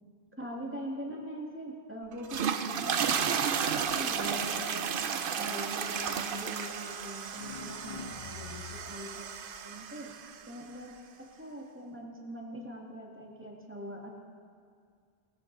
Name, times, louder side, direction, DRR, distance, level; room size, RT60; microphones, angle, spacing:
voice 1, 0.4-4.9 5.4-9.3 9.6-10.1 10.5-10.9 11.2-14.1, equal, 10° right, -2 dB, 1.9 m, -42 dB
sound 1, 2.1-10.5, right 7 dB, 60° right, 0.8 m, -33 dB
sound 2, 7.3-9.1, left 7 dB, 45° left, 0.6 m, -45 dB
19.5 x 13.5 x 3.9 m, 2.2 s
omnidirectional pair, 1.0 m